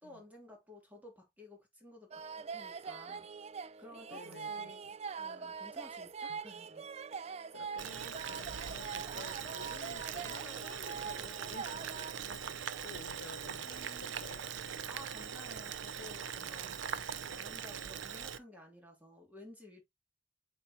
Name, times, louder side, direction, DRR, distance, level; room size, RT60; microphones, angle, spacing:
voice 1, 0.0-3.4 3.8-4.8 5.2-6.9 13.6-14.2 14.9-17.0 17.3-19.8, left 1 dB, 10° right, 3.1 m, -54 dB
sound 1, 2.1-12.2, right 6 dB, 35° right, 0.4 m, -43 dB
voice 2, 4.1-4.7 6.3-6.4 7.5-14.6 16.6-17.1, left 5 dB, 75° left, 0.5 m, -53 dB
Boiling, 7.8-18.4, right 7 dB, 75° right, 0.6 m, -41 dB
8.2 x 4.3 x 3.0 m
head